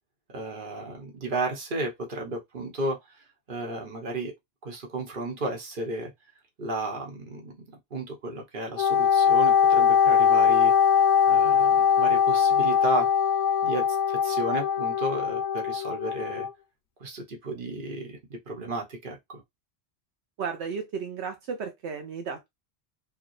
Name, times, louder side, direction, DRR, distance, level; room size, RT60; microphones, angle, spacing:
voice 1, 0.3-4.3 4.6-6.1 6.6-7.6 7.9-10.7 11.3-13.1 13.6-16.5 17.0-19.4, right 2 dB, 50° right, 1.3 m, -33 dB
Wind instrument woodwind instrument, 8.8-16.5, left 7 dB, 80° left, 1.0 m, -21 dB
voice 2, 20.4-22.5, right 6 dB, 75° right, 1.0 m, -34 dB
4.8 x 2.3 x 3.1 m
omnidirectional pair, 1.1 m